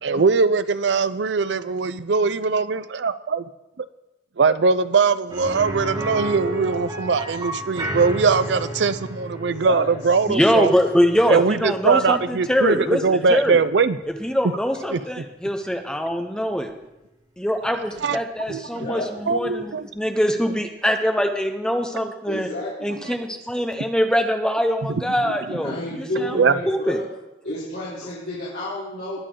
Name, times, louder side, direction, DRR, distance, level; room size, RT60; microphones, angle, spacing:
voice 1, 0.0-3.4 3.8-3.9 4.4-10.7 11.3-14.0 14.9-15.0 18.0-18.2 18.5-18.6 19.3-19.9 25.2-25.6 26.3-26.5, right 4 dB, 70° right, 15 dB, 0.5 m, -21 dB
sound 1, 5.3-15.1 15.4-15.5 17.9-18.0, right 1 dB, 25° right, 5.1 m, -33 dB
voice 2, 10.3-13.6 14.2-16.7 17.4-22.5 22.8-26.4 26.6-27.0, equal, 5° left, 5 dB, 0.7 m, -23 dB
voice 3, 18.7-19.1 22.2-23.0 25.6-27.0 27.4-29.3, left 1 dB, 70° left, -12 dB, 4.2 m, -31 dB
20.0 x 6.7 x 3.8 m, 0.96 s
head